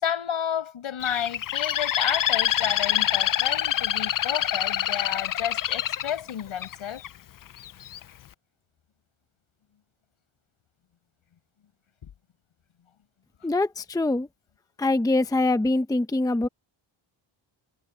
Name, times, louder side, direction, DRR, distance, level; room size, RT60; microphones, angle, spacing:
voice 1, 0.0-7.0 12.0-12.1, left 9 dB, 75° left, 6.5 m, -31 dB
Bird, 1.0-7.1 7.6-8.0, left 11 dB, 45° left, 0.4 m, -26 dB
voice 2, 13.4-14.3 14.8-16.5, left 2 dB, 5° left, 0.7 m, -24 dB
wide cardioid pair, 135°, 49 cm